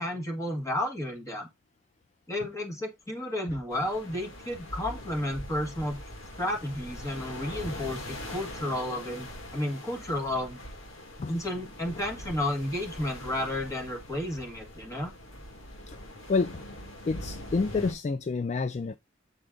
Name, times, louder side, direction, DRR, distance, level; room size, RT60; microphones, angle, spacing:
voice 1, 0.0-1.5 2.3-6.0 6.4-10.6 11.3-15.1, left 1 dB, 15° left, 1.7 m, -32 dB
sound 1, 3.7-17.9, left 1 dB, 80° left, 2.0 m, -42 dB
voice 2, 16.3-16.6 17.1-19.0, left 4 dB, 35° left, 0.3 m, -28 dB
8.0 x 4.2 x 3.8 m
head